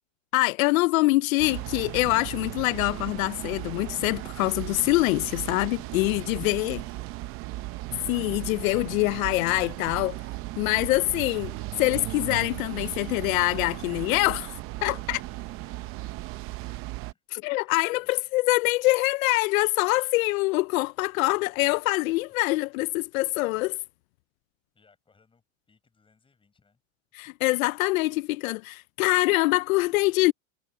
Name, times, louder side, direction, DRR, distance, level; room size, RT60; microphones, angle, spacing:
voice 1, 0.3-6.8 8.1-10.2 10.6-11.5 11.8-15.2 17.3-23.8 27.1-30.3, left 22 dB, 85° left, 0.5 m, -24 dB
sound 1, 1.4-17.1, right 19 dB, 35° right, 0.6 m, -36 dB
voice 2, 6.1-7.9 15.1-16.1 16.6-17.2 17.6-18.3 22.3-22.4 24.7-26.8 27.2-27.5, left 4 dB, 15° left, 6.8 m, -64 dB
supercardioid pair, 155°, 40 cm